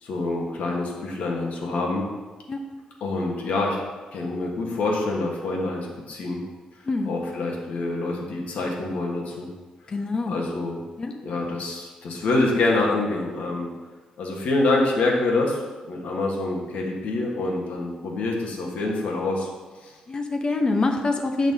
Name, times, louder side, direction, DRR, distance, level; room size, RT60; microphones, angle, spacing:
voice 1, 0.0-2.1 3.0-3.8 4.1-6.4 7.0-9.5 10.3-10.8 11.2-13.7 14.2-19.5 19.8-19.9, left 2 dB, 75° left, -1 dB, 1.5 m, -26 dB
voice 2, 6.9-7.2 9.9-10.4 11.0-11.2 20.1-21.5, left 3 dB, 35° left, 4 dB, 0.9 m, -25 dB
9.0 x 5.9 x 2.8 m, 1.3 s
cardioid pair, 100°, 2 cm